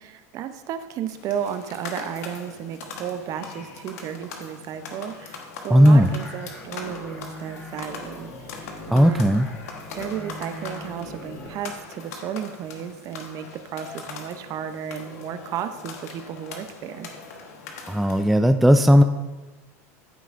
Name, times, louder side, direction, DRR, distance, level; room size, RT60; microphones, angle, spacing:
voice 1, 0.0-9.4 9.9-17.1, right 9 dB, 45° right, 10 dB, 0.7 m, -33 dB
sound 1, 1.0-18.4, left 4 dB, 80° left, 1.3 m, -41 dB
voice 2, 5.7-6.1 8.9-9.5 17.9-19.0, equal, ahead, 7 dB, 0.3 m, -15 dB
sound 2, 5.8-11.6, left 1 dB, 30° left, 2.0 m, -41 dB
13.5 x 5.8 x 2.5 m, 1.2 s
hypercardioid pair, 105°, 8 cm